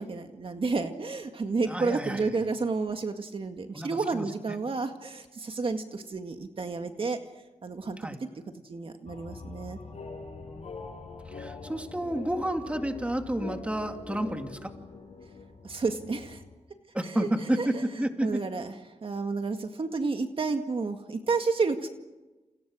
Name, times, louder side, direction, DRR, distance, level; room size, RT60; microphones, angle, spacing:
voice 1, 0.0-7.2 7.6-8.2 8.6-9.8 15.6-16.4 17.0-17.3 17.6-17.8 18.2-18.7 19.0-21.9, right 4 dB, 50° right, 6 dB, 2.0 m, -31 dB
voice 2, 1.7-2.3 3.7-4.3 8.0-8.2 10.4-10.7 11.3-14.7 16.9-18.4, right 1 dB, 10° right, 5 dB, 2.5 m, -31 dB
sound 1, 9.1-16.5, left 3 dB, 65° left, 5.7 m, -43 dB
29.5 x 29.5 x 6.4 m, 1.1 s
wide cardioid pair, 120°, 12 cm